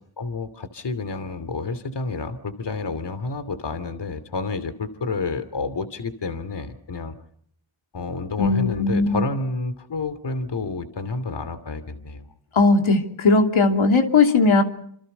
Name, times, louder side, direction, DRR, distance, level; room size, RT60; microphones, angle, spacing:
voice 1, 0.2-7.2 7.9-12.3, left 3 dB, 55° left, 12 dB, 2.8 m, -29 dB
voice 2, 8.4-9.2 12.5-14.6, left 3 dB, 75° left, 4 dB, 3.1 m, -18 dB
27.5 x 27.0 x 5.6 m, 0.66 s
cardioid pair, 60°, 49 cm